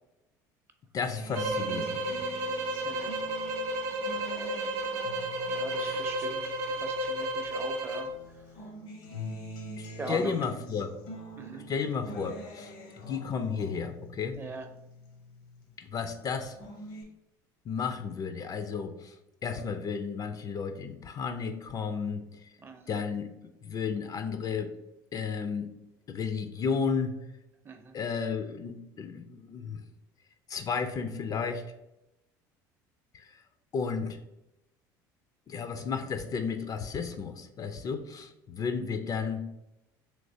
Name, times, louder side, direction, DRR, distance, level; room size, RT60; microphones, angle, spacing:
voice 1, 0.9-2.2 5.8-6.0 9.8-10.9 11.7-12.7 13.1-14.4 15.8-16.6 17.7-19.2 19.4-22.5 22.9-24.8 25.1-25.7 26.1-27.2 27.9-29.8 30.5-31.7 33.1-33.4 33.7-34.2 35.5-39.5, left 5 dB, 40° left, 8 dB, 0.3 m, -33 dB
Acoustic guitar, 1.0-7.7 8.1-15.7 16.1-17.0, left 1 dB, 80° left, 0.8 m, -45 dB
sound 1, 1.3-8.1, right 1 dB, 70° right, 0.6 m, -32 dB
voice 2, 2.8-3.2 5.5-8.6 9.9-10.4 11.4-11.7 14.4-14.7 22.6-23.0 27.6-27.9, right 3 dB, 25° right, 5 dB, 0.5 m, -42 dB
3.2 x 3.0 x 2.6 m, 0.91 s
supercardioid pair, 80°, 10 cm